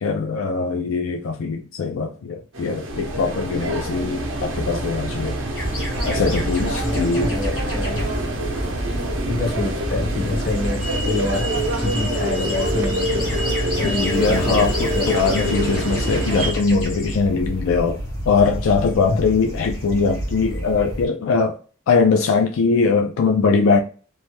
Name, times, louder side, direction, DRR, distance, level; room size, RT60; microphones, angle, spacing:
voice 1, 0.0-5.4 6.0-7.4 13.8-18.0 18.3-21.6 21.9-23.8, left 4 dB, 85° left, 0.4 m, -21 dB
sound 1, 2.5-16.5, right 1 dB, 75° right, 0.7 m, -26 dB
sound 2, 2.9-8.1, equal, 10° left, 0.3 m, -36 dB
sound 3, 5.5-21.1, equal, 70° left, 1.4 m, -29 dB
voice 2, 6.8-8.1 9.3-15.1, left 3 dB, 50° left, 0.8 m, -27 dB
3.0 x 2.1 x 3.0 m
head